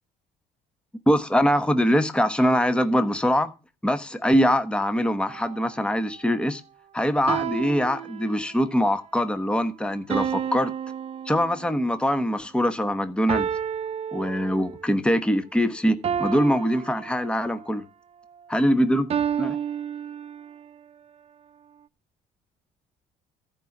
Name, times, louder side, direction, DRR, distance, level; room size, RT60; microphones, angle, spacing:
voice 1, 1.1-3.5 3.8-6.6 6.9-10.7 11.2-13.5 14.1-17.8 18.5-19.1 19.4-19.6, equal, 5° left, 1.1 m, -23 dB
sound 1, 5.3-5.7 7.3-8.8 10.1-11.9 13.3-14.9 16.0-17.7 19.1-20.7, right 8 dB, 35° right, 0.6 m, -31 dB
13.5 x 5.3 x 7.2 m
cardioid pair, 110°, 17 cm